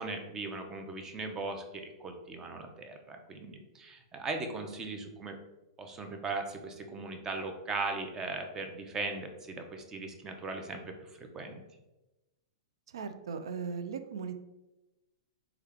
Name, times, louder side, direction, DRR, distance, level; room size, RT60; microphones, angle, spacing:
voice 1, 0.0-5.3 5.8-10.8 11.2-11.6, right 3 dB, 20° right, 5 dB, 0.5 m, -38 dB
voice 2, 12.9-14.4, right 6 dB, 80° right, 9 dB, 0.3 m, -38 dB
3.4 x 2.2 x 3.4 m, 1.0 s
hypercardioid pair, 130°, 3 cm